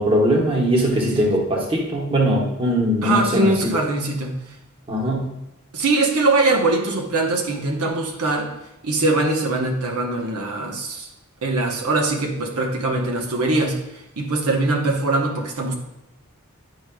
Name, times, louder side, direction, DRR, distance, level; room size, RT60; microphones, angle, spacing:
voice 1, 0.0-3.8 4.9-5.3, equal, 25° right, -1 dB, 1.0 m, -20 dB
voice 2, 3.0-4.4 5.7-8.5 8.8-11.1 11.4-15.7, right 2 dB, 90° right, 1 dB, 0.9 m, -22 dB
9.7 x 4.8 x 2.2 m, 0.90 s
head